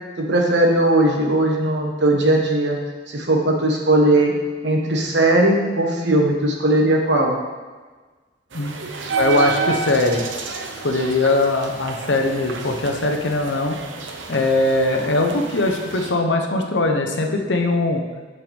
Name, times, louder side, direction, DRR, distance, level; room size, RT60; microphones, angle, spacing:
voice 1, 0.2-2.8 3.1-4.3 4.6-7.4, right 1 dB, 65° right, 1 dB, 1.3 m, -18 dB
voice 2, 8.5-8.9 9.2-10.2 10.8-13.8 14.3-18.0, left 2 dB, 70° left, 3 dB, 0.9 m, -20 dB
sound 1, 8.5-16.1, right 4 dB, 85° right, 0.8 m, -30 dB
9.0 x 6.8 x 3.5 m, 1.4 s
head